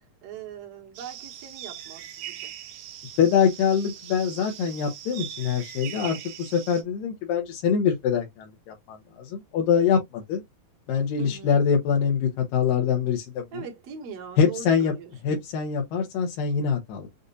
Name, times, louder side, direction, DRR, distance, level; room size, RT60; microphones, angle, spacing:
voice 1, 0.2-2.5 11.2-11.6 13.5-15.4, right 7 dB, 55° right, 2.0 m, -41 dB
sound 1, 0.9-6.8, right 11 dB, 80° right, 2.6 m, -41 dB
voice 2, 3.2-10.4 10.9-13.6 14.4-14.9 15.2-17.1, left 7 dB, 80° left, 2.5 m, -24 dB
6.7 x 2.5 x 2.6 m
omnidirectional pair, 4.0 m